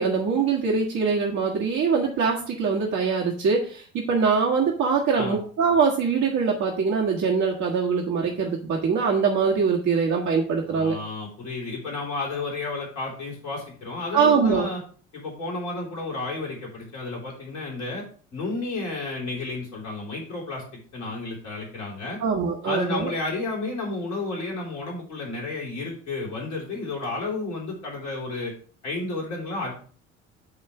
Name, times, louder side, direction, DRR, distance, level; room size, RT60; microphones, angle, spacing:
voice 1, 0.0-10.9 14.1-14.7 22.2-23.1, right 5 dB, 50° right, -2 dB, 1.7 m, -23 dB
voice 2, 10.7-14.8 15.1-18.0 18.3-20.6 20.9-22.2 22.6-28.5 28.8-29.7, left 3 dB, 70° left, -2 dB, 3.8 m, -32 dB
9.6 x 3.2 x 5.9 m, 0.42 s
figure-of-eight pair, 60°, 38 cm